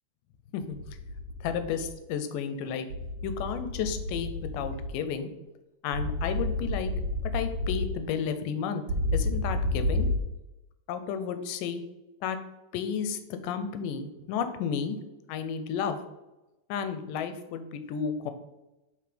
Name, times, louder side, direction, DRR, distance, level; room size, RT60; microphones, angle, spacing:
sound 1, 0.7-1.9 2.9-4.9 5.9-7.9 8.9-10.2, left 1 dB, 60° right, 1.8 m, -31 dB
voice 1, 1.4-2.9 3.2-5.3 5.8-6.9 7.3-8.8 9.1-10.1 10.9-11.8 12.2-12.4 12.7-15.0 15.3-16.0 16.7-18.3, left 7 dB, 85° left, 9 dB, 2.2 m, -32 dB
6.7 x 4.3 x 5.1 m, 1.0 s
omnidirectional pair, 3.8 m